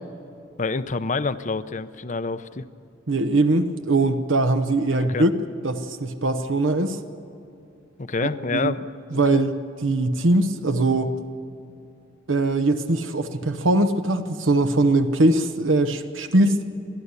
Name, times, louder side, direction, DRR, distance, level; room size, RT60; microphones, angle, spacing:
voice 1, 0.6-2.7 5.0-5.2 8.0-8.9 9.1-9.4, left 4 dB, 35° left, 12 dB, 0.6 m, -27 dB
voice 2, 3.1-5.3 5.6-7.0 8.2-8.7 9.1-9.5 9.8-11.2 12.3-16.6, right 2 dB, 70° right, 8 dB, 1.0 m, -21 dB
29.5 x 11.5 x 8.3 m, 2.7 s
head